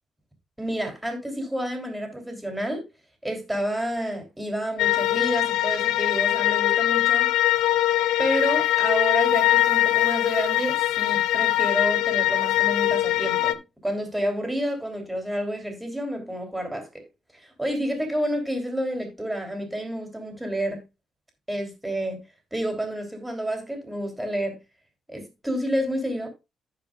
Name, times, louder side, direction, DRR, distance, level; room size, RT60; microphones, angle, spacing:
voice 1, 0.6-2.8 3.2-7.3 8.2-17.0 17.4-20.8 21.5-22.2 22.5-24.6 25.1-26.3, equal, 5° right, 3.2 m, -29 dB
sound 1, 4.8-13.5, left 14 dB, 90° left, 0.5 m, -22 dB
15.0 x 5.2 x 2.5 m
cardioid pair, 90°, 0 cm